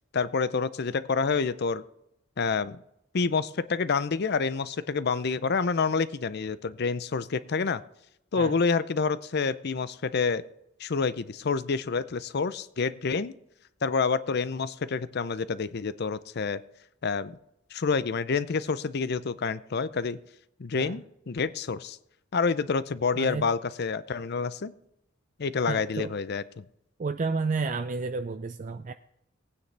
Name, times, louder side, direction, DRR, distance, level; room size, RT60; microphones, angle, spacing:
voice 1, 0.1-1.8 2.4-2.8 3.1-7.8 8.3-10.4 10.8-13.3 13.8-16.6 17.0-17.4 17.7-20.2 20.6-22.0 22.3-24.7 25.4-26.6, left 5 dB, 55° left, 16 dB, 0.5 m, -28 dB
voice 2, 23.2-23.5 25.7-26.1 27.0-28.9, right 4 dB, 40° right, 9 dB, 0.4 m, -31 dB
18.0 x 9.5 x 3.4 m, 0.82 s
head